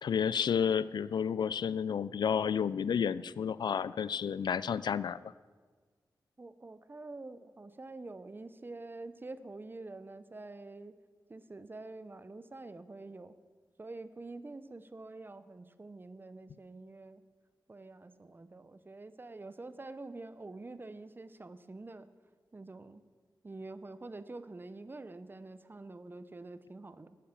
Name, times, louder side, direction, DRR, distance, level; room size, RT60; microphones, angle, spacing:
voice 1, 0.0-5.2, left 7 dB, 80° left, 17 dB, 0.4 m, -31 dB
voice 2, 6.4-10.9 11.3-13.3 13.8-17.3 17.7-22.1 22.5-23.0 23.4-27.2, right 2 dB, 30° right, 13 dB, 0.7 m, -47 dB
12.0 x 9.2 x 7.4 m, 1.5 s
wide cardioid pair, 80°, 7 cm